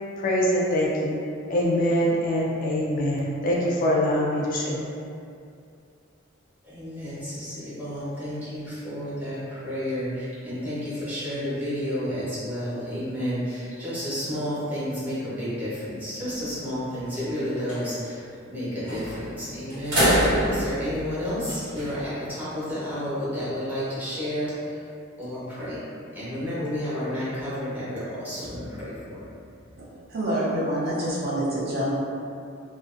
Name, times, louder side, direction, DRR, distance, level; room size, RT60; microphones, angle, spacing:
voice 1, 0.2-1.2 1.5-4.9, equal, 40° left, -4 dB, 0.3 m, -24 dB
voice 2, 6.6-18.2 18.5-24.9 25.2-25.8 26.1-29.2, equal, 10° right, -12 dB, 0.8 m, -31 dB
sound 1, 16.2-16.8 17.1-17.2 17.5-17.8 18.9-19.3 19.7-21.9, equal, 75° right, 1.2 m, -25 dB
voice 3, 30.1-31.9, right 1 dB, 50° right, -7 dB, 0.5 m, -26 dB
2.5 x 2.1 x 2.4 m, 2.5 s
head